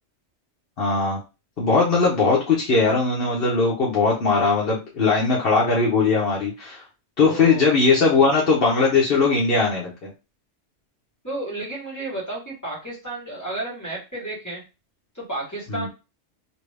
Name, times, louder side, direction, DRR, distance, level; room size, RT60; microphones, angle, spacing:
voice 1, 0.8-1.2 1.6-6.8 7.2-10.1 15.7-15.9, left 4 dB, 55° left, -4 dB, 1.0 m, -20 dB
voice 2, 7.3-7.6 11.2-14.6 15.1-15.9, right 1 dB, 15° left, -6 dB, 1.5 m, -32 dB
2.8 x 2.6 x 3.2 m, 0.28 s
omnidirectional pair, 1.2 m